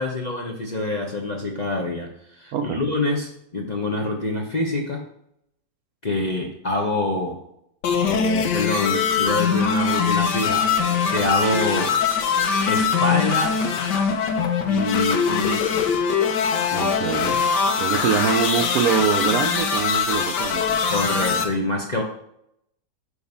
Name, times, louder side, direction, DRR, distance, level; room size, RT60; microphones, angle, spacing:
voice 1, 0.0-5.0 6.0-7.4 8.1-12.0 12.7-13.7 14.7-15.9 20.9-22.0, left 2 dB, 35° left, 0 dB, 0.8 m, -26 dB
sound 1, 7.8-21.4, left 6 dB, 85° left, 1.5 m, -22 dB
sound 2, 9.3-15.5 15.8-16.0, left 1 dB, 50° left, 3.6 m, -39 dB
voice 2, 16.7-17.4 17.8-20.8, right 8 dB, 70° right, 7 dB, 1.0 m, -24 dB
9.7 x 3.3 x 5.4 m, 0.75 s
omnidirectional pair, 1.8 m